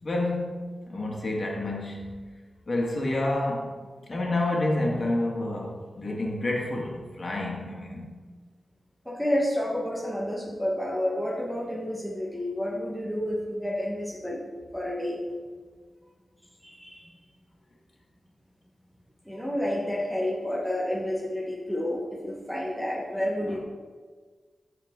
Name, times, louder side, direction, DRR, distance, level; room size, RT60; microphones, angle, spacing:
voice 1, 0.0-2.2 2.7-3.7 4.1-8.2 23.4-23.6, left 2 dB, 50° left, -2 dB, 2.2 m, -29 dB
voice 2, 9.0-14.4 14.7-15.2 16.6-17.1 19.2-23.6, left 1 dB, ahead, -3 dB, 1.4 m, -30 dB
14.0 x 4.6 x 3.8 m, 1.5 s
cardioid pair, 60°, 0 cm